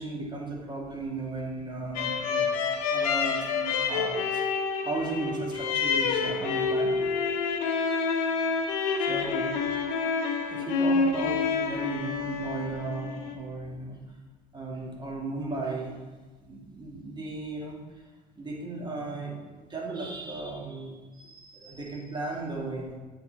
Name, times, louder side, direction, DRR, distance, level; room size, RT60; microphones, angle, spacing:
voice 1, 0.0-4.5 4.8-7.0 9.0-9.5 10.4-14.0 14.5-16.0 16.4-18.0 18.4-23.0, right 3 dB, 25° right, -2 dB, 1.9 m, -36 dB
sound 1, 1.9-13.4, left 5 dB, 75° left, 0.8 m, -28 dB
8.0 x 4.0 x 3.8 m, 1.3 s
hypercardioid pair, 70°, 19 cm